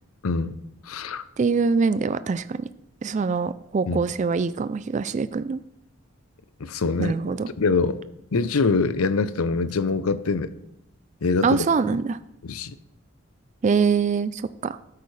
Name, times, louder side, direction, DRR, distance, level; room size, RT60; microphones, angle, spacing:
voice 1, 0.9-1.2 3.9-4.0 6.6-7.2 7.6-8.0 8.3-10.5 11.2-11.6 12.4-12.8, left 4 dB, 80° left, 14 dB, 0.6 m, -24 dB
voice 2, 1.4-2.7 3.0-5.6 7.0-7.5 11.4-12.2 13.6-14.8, right 5 dB, 35° right, 13 dB, 0.3 m, -24 dB
13.5 x 8.1 x 3.3 m, 0.80 s
head